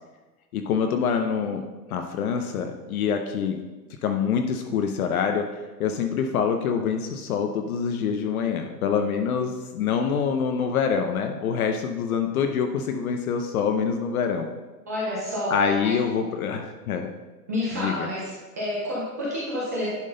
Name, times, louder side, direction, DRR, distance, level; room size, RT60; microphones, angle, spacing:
voice 1, 0.5-1.6 1.9-3.6 4.0-5.4 5.8-14.5 15.5-17.1 17.7-18.1, left 6 dB, 60° left, 5 dB, 0.8 m, -25 dB
voice 2, 14.9-15.9 17.5-18.3 18.6-19.9, left 1 dB, 10° right, -8 dB, 0.3 m, -29 dB
10.5 x 3.8 x 3.9 m, 1.2 s
hypercardioid pair, 140°, 50 cm